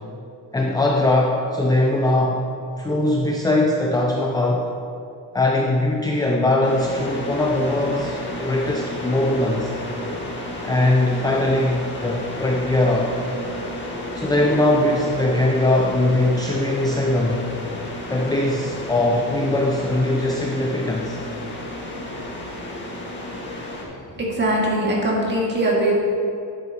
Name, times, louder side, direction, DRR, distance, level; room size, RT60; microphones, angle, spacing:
voice 1, 0.5-2.4 2.8-4.7 5.3-9.7 10.6-13.2 14.1-17.5 18.1-21.2, left 1 dB, 10° left, -1 dB, 0.5 m, -21 dB
sound 1, 6.6-23.8, left 1 dB, 25° left, 1.8 m, -32 dB
voice 2, 24.1-25.9, right 1 dB, 25° right, -4 dB, 2.1 m, -21 dB
11.5 x 7.9 x 2.9 m, 2.6 s
cardioid pair, 120°, 44 cm